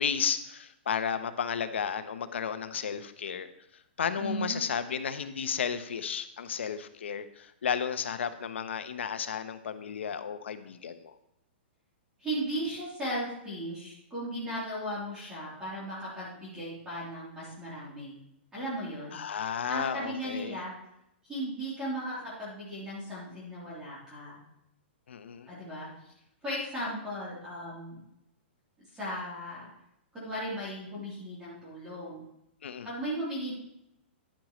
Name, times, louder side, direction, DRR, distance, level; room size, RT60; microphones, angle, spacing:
voice 1, 0.0-3.5 4.0-11.1 19.1-20.6 25.1-25.5 32.6-32.9, left 7 dB, 85° left, 10 dB, 1.0 m, -33 dB
voice 2, 4.2-4.6 12.2-18.2 18.5-19.2 19.7-20.7 21.2-24.4 25.5-26.1 26.4-28.0 28.9-29.7 30.1-32.2 32.9-33.5, equal, 10° right, -8 dB, 3.4 m, -36 dB
10.5 x 10.0 x 3.2 m, 0.82 s
hypercardioid pair, 165°, 6 cm